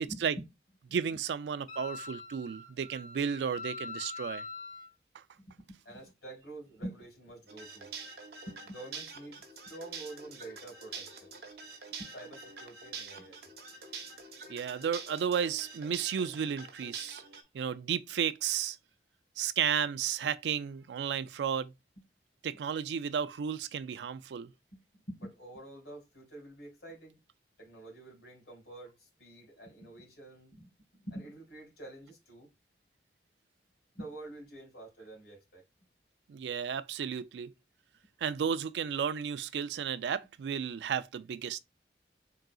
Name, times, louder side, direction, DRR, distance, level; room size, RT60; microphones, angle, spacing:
voice 1, 0.1-0.4 0.9-1.2 5.4-7.9 8.5-11.3 12.0-13.5 24.7-27.2 27.6-32.5 33.9-35.6, right 1 dB, 80° left, 2.7 m, -47 dB
voice 2, 0.9-4.4 14.5-17.2 17.5-18.8 19.4-21.7 22.4-24.5 36.3-37.5 38.2-41.6, right 7 dB, 80° right, 0.3 m, -33 dB
Wind instrument woodwind instrument, 1.7-4.9, left 4 dB, 50° left, 0.9 m, -43 dB
sound 1, 7.5-17.4, right 5 dB, 65° right, 0.8 m, -46 dB
3.9 x 3.7 x 2.3 m
head